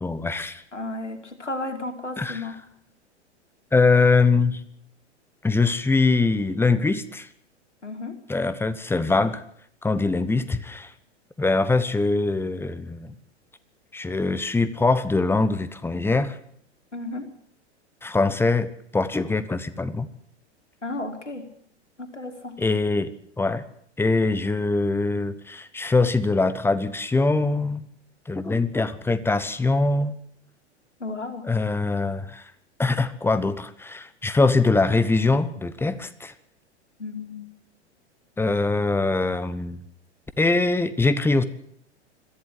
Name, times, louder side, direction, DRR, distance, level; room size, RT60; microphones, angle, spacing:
voice 1, 0.0-0.6 2.2-2.4 3.7-4.6 5.4-7.3 8.3-9.4 9.8-10.9 11.4-13.1 13.9-16.4 18.0-20.1 22.6-23.6 24.0-27.9 28.3-30.1 31.5-32.4 32.8-36.3 38.4-39.8 40.4-41.4, left 3 dB, 5° left, 13 dB, 1.1 m, -23 dB
voice 2, 0.7-2.6 7.8-8.2 16.9-17.3 20.8-21.5 22.0-22.5 31.0-31.5 37.0-37.5, left 2 dB, 90° left, 5 dB, 2.8 m, -33 dB
22.0 x 14.5 x 8.1 m, 0.69 s
figure-of-eight pair, 100°, 35 cm